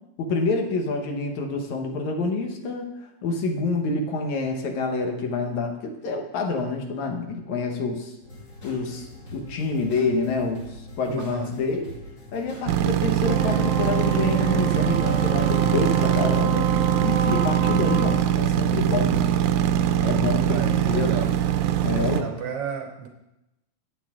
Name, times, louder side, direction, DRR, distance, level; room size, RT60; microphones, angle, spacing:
voice 1, 0.2-2.9 3.2-8.1 8.6-11.9 12.3-16.7 17.0-19.3 20.0-21.2 21.8-22.4, left 3 dB, 70° left, 3 dB, 2.5 m, -27 dB
sound 1, 8.2-15.6, left 1 dB, 55° left, 5.8 m, -44 dB
voice 2, 11.1-11.5 20.5-21.3 22.1-23.1, right 7 dB, 70° right, 4 dB, 1.5 m, -33 dB
sound 2, 12.7-22.2, right 10 dB, 85° right, 2.0 m, -22 dB
Wind instrument woodwind instrument, 13.2-18.3, right 2 dB, 50° right, 1.0 m, -31 dB
14.0 x 9.2 x 3.7 m, 0.93 s
omnidirectional pair, 3.5 m